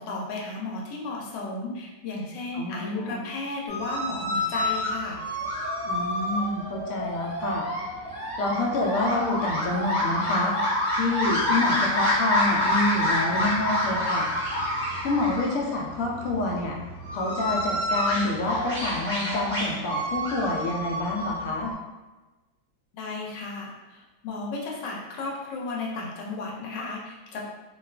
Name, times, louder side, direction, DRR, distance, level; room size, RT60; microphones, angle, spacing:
voice 1, 0.0-5.2 22.9-27.4, left 3 dB, 85° left, -2 dB, 1.2 m, -34 dB
voice 2, 2.5-3.2 5.8-7.7 8.4-10.5 10.9-14.3 15.0-16.8 17.1-21.7, left 2 dB, 70° left, -2 dB, 0.8 m, -27 dB
sound 1, 3.7-21.7, left 1 dB, 15° right, 1.2 m, -28 dB
2.8 x 2.3 x 2.2 m, 1.2 s
omnidirectional pair, 1.9 m